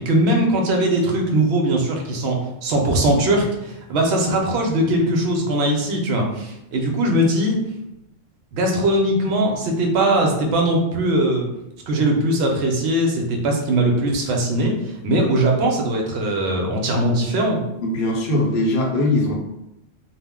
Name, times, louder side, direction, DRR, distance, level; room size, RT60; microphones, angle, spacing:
voice 1, 0.0-7.6 8.5-11.5 11.9-17.6, right 1 dB, 65° right, 1 dB, 0.8 m, -20 dB
voice 2, 17.8-19.3, left 1 dB, 55° left, -1 dB, 0.8 m, -20 dB
2.4 x 2.0 x 3.5 m, 0.88 s
omnidirectional pair, 1.3 m